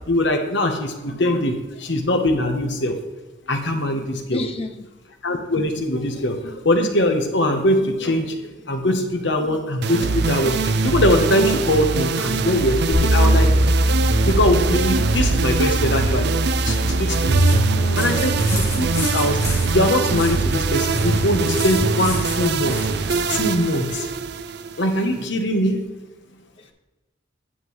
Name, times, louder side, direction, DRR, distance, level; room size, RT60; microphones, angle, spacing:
voice 1, 0.1-2.9 3.5-4.4 5.2-13.5 14.2-17.4 18.0-19.4 19.6-24.1 24.8-25.8, left 1 dB, 70° left, 5 dB, 1.2 m, -22 dB
voice 2, 4.3-4.9 17.7-18.8 26.6-26.7, left 1 dB, 30° left, 7 dB, 0.8 m, -32 dB
sound 1, 9.8-25.2, right 4 dB, 60° right, 0.5 m, -23 dB
sound 2, 12.9-21.6, right 1 dB, 90° right, 1.3 m, -22 dB
sound 3, 17.3-23.5, left 1 dB, 15° left, 2.2 m, -32 dB
9.8 x 7.6 x 3.2 m, 1.2 s
head